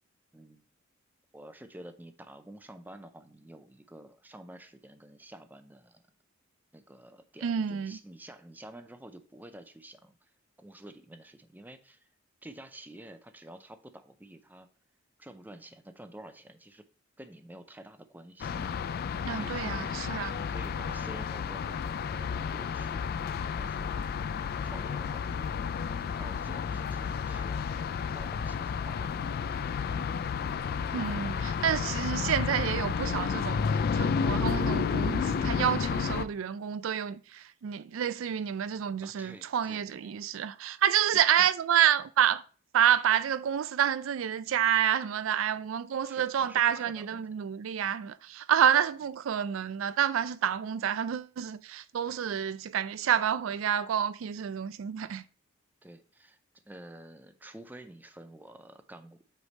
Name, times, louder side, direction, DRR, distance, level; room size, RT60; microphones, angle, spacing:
voice 1, 0.3-0.7 1.3-6.0 6.7-10.3 10.6-12.1 12.4-14.7 15.2-16.9 17.2-18.5 19.3-19.9 20.4-24.3 24.6-25.6 25.9-27.8 28.1-29.6 39.0-40.1 41.4-41.5 46.1-47.3 55.8-56.4 56.7-59.2, right 1 dB, 10° right, 0.5 m, -49 dB
voice 2, 7.4-8.0 19.3-20.4 30.9-42.4 42.7-55.2, right 9 dB, 75° right, 0.4 m, -28 dB
sound 1, 18.4-36.3, left 6 dB, 50° left, 0.3 m, -31 dB
8.0 x 3.3 x 4.1 m
head